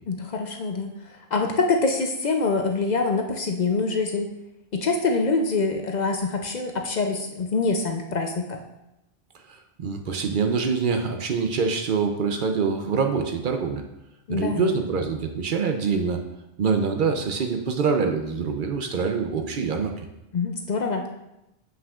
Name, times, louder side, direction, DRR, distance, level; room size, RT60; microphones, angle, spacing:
voice 1, 0.1-4.3 4.7-8.6 14.3-14.7 20.3-21.1, left 3 dB, 55° left, 4 dB, 0.6 m, -25 dB
voice 2, 9.5-13.8 14.3-16.2 16.6-19.9, right 5 dB, 60° right, 5 dB, 0.7 m, -25 dB
7.4 x 5.8 x 2.4 m, 0.90 s
omnidirectional pair, 1.0 m